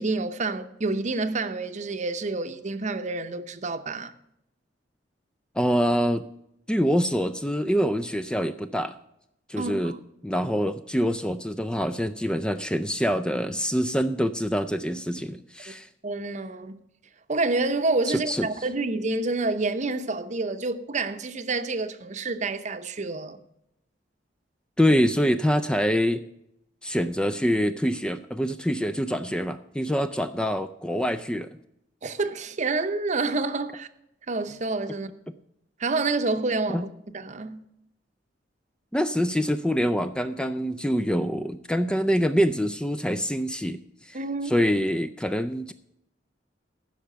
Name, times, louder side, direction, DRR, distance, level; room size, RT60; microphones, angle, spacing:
voice 1, 0.0-4.1 9.6-10.0 16.0-16.8 17.3-23.4 32.0-33.9 34.3-35.1 35.8-36.9 37.1-37.6 44.1-44.5, right 3 dB, 40° right, 0.8 m, -28 dB
voice 2, 5.6-6.2 6.7-9.0 9.5-9.9 10.2-15.9 18.1-18.5 24.8-26.2 26.8-31.5 36.7-36.8 38.9-44.2 44.5-45.7, equal, 5° left, 0.4 m, -25 dB
15.0 x 5.8 x 6.6 m
head